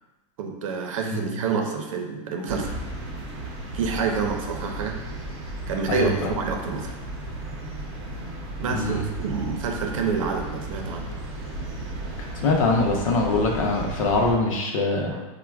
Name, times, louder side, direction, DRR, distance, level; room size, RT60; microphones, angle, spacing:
voice 1, 0.4-2.9 3.7-5.0 5.7-6.9 8.6-11.1 15.1-15.3, right 5 dB, 80° right, 3 dB, 0.6 m, -28 dB
sound 1, 2.5-14.3, right 1 dB, 35° right, 0.7 m, -35 dB
voice 2, 5.9-6.3 8.7-9.1 12.4-15.1, left 2 dB, 85° left, 0 dB, 0.7 m, -23 dB
4.4 x 2.2 x 2.3 m, 1.1 s
supercardioid pair, 170°, 17 cm